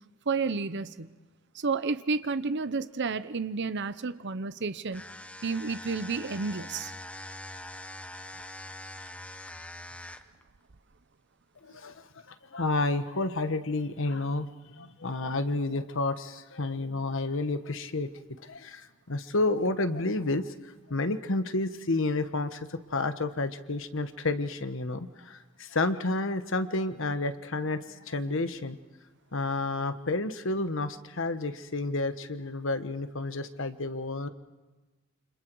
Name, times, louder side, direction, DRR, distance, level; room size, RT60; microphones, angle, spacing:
voice 1, 0.3-1.1 1.5-5.0 5.4-6.9, right 4 dB, 55° right, 13 dB, 0.8 m, -31 dB
sound 1, 4.9-10.4, left 1 dB, 5° left, 0.9 m, -43 dB
voice 2, 11.6-18.1 18.4-28.8 29.3-34.3, left 2 dB, 65° left, 10 dB, 1.3 m, -30 dB
29.0 x 26.0 x 4.7 m, 1.2 s
head